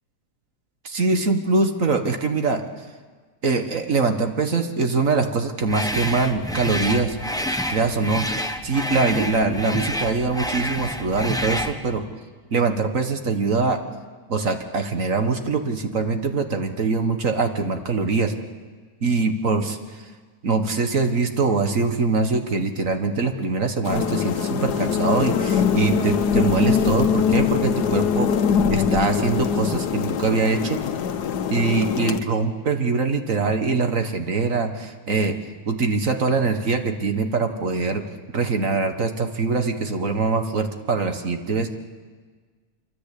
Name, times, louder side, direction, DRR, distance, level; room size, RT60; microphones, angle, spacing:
voice 1, 0.8-2.6 3.4-7.2 7.7-12.0 12.5-13.8 14.3-18.3 19.0-19.8 20.4-28.3 28.7-30.8 31.5-35.4 35.7-38.0 38.3-41.7, right 4 dB, 55° right, 6 dB, 1.8 m, -23 dB
sound 1, 5.7-11.8, equal, 5° left, 0.9 m, -28 dB
sound 2, 23.8-32.2, left 7 dB, 85° left, 1.6 m, -22 dB
25.5 x 24.0 x 8.5 m, 1.5 s
omnidirectional pair, 1.7 m